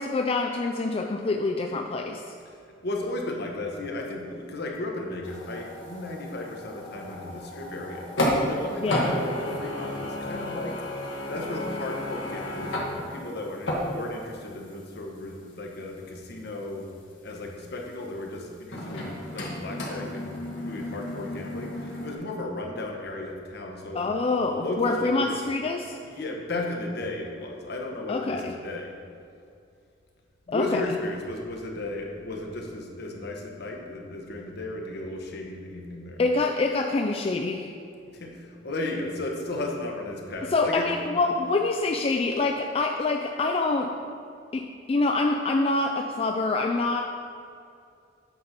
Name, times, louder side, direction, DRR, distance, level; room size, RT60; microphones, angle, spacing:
voice 1, 0.0-2.2 8.8-9.1 23.9-26.0 28.1-28.6 30.5-30.8 36.2-37.7 40.5-43.9 44.5-47.0, left 3 dB, 30° left, 3 dB, 0.3 m, -26 dB
voice 2, 2.8-8.1 8.5-10.8 11.3-16.9 17.2-20.4 20.7-24.1 24.5-25.4 25.8-28.9 30.5-36.3 38.0-41.4 42.3-42.4, left 2 dB, 60° left, 1 dB, 1.0 m, -35 dB
sound 1, 5.2-8.6 8.9-14.4 14.7-14.8 18.7-22.2, left 1 dB, 85° left, 1.5 m, -32 dB
8.5 x 4.1 x 5.8 m, 2.4 s
head